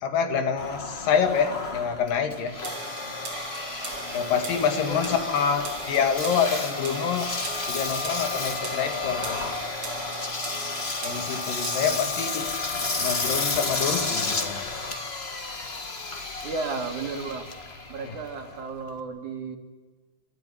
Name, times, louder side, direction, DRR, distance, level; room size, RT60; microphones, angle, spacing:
voice 1, 0.0-2.6 4.1-7.3 7.7-9.5 11.0-12.5 13.0-14.6 18.1-18.2, left 6 dB, 90° left, 6 dB, 3.8 m, -26 dB
Engine, 0.6-19.0, left 3 dB, 35° left, 1.0 m, -32 dB
sound 1, 2.6-12.3, right 4 dB, 45° right, 4.4 m, -39 dB
voice 2, 4.8-5.2 11.9-12.0 16.4-17.5 17.9-19.6, right 4 dB, 65° right, 3 dB, 3.7 m, -33 dB
28.0 x 13.5 x 9.9 m, 1.4 s
omnidirectional pair, 3.8 m